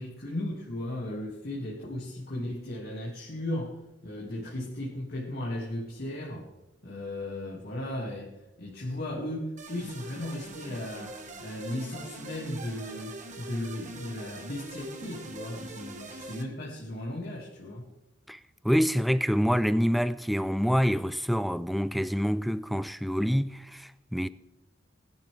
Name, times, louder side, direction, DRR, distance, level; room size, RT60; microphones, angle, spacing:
voice 1, 0.0-6.5 6.8-17.9, left 1 dB, 55° left, 2.1 m, -36 dB
sound 1, 9.6-16.4, right 2 dB, 40° right, 1.4 m, -43 dB
voice 2, 18.6-24.3, equal, ahead, 0.3 m, -26 dB
19.5 x 10.5 x 3.4 m
head